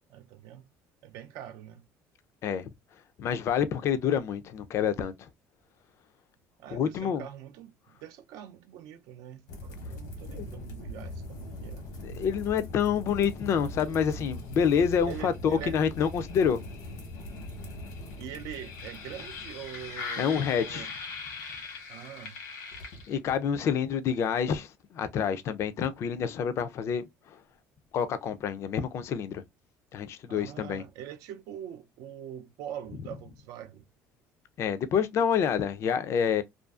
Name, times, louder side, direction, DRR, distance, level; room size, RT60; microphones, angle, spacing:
voice 1, 0.1-0.7 1.0-1.8 6.6-11.9 15.1-15.8 18.2-20.9 21.9-22.4 30.3-33.8, right 10 dB, 70° right, 0.4 m, -43 dB
voice 2, 3.2-5.3 6.7-7.2 10.4-10.5 12.0-16.6 20.2-20.9 23.1-27.0 27.9-29.4 29.9-30.8 34.6-36.4, left 7 dB, 45° left, 0.4 m, -27 dB
sound 1, 9.5-23.4, left 2 dB, 80° left, 1.0 m, -40 dB
2.5 x 2.3 x 2.3 m
cardioid pair, 130°, 6 cm